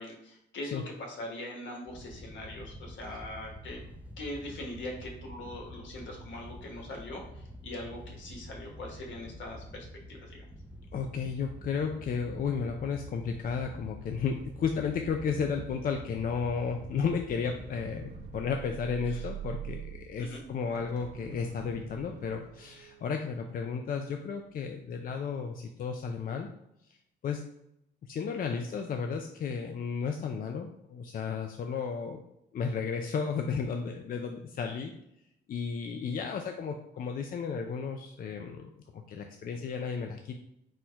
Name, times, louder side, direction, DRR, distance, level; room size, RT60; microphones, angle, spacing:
voice 1, 0.0-3.8 4.2-10.4 19.1-19.2 20.2-20.4, left 1 dB, 70° left, 0 dB, 1.2 m, -42 dB
Wind / Boat Water vehicle, 1.9-18.4, equal, 5° right, 0.5 m, -47 dB
voice 2, 10.9-26.5 27.2-27.5 28.1-32.2 32.5-34.9 35.5-40.4, left 6 dB, 45° left, 4 dB, 0.4 m, -33 dB
sound 1, 14.4-24.6 25.0-25.2, right 10 dB, 60° right, 0.5 m, -46 dB
4.3 x 2.2 x 4.4 m, 0.80 s
cardioid pair, 90°, 20 cm